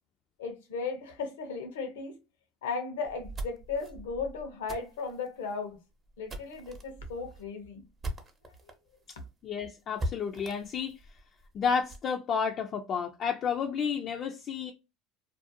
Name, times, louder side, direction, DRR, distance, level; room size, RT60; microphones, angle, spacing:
voice 1, 0.4-2.2 2.6-5.8 6.2-7.8, left 4 dB, 85° left, 0.7 m, -36 dB
sound 1, 3.1-8.7 9.1-9.2 9.5-9.6 10.0-12.1, right 1 dB, 30° right, 0.7 m, -41 dB
voice 2, 9.4-11.0 11.5-14.7, left 6 dB, 45° left, 0.3 m, -31 dB
2.4 x 2.1 x 2.6 m
hypercardioid pair, 90°, 0 cm